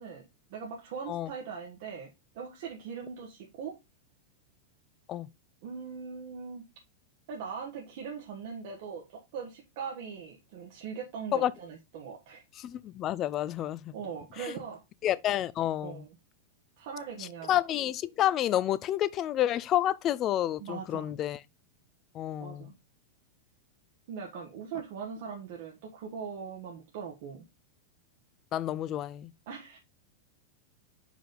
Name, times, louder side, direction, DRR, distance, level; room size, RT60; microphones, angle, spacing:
voice 1, 0.0-3.8 5.6-6.6 7.3-12.4 13.9-14.8 15.8-16.2 16.8-17.6 20.6-21.1 22.4-22.7 24.1-27.5 29.5-29.8, right 6 dB, 60° right, 1.3 m, -41 dB
voice 2, 12.6-13.9 15.0-16.0 17.2-21.4 22.1-22.7 28.5-29.3, left 12 dB, 35° left, 0.5 m, -29 dB
5.1 x 4.9 x 3.8 m
hypercardioid pair, 115°, 0 cm